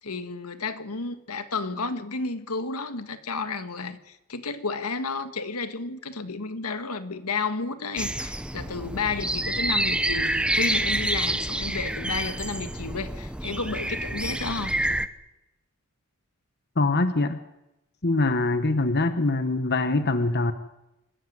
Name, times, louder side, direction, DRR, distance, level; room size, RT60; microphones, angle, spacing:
voice 1, 0.0-14.8, left 4 dB, 80° left, 1.7 m, -32 dB
sound 1, 8.0-15.1, right 1 dB, 5° right, 0.9 m, -28 dB
voice 2, 16.8-17.4 18.0-20.5, left 2 dB, 45° left, 1.2 m, -23 dB
26.5 x 14.5 x 9.5 m
head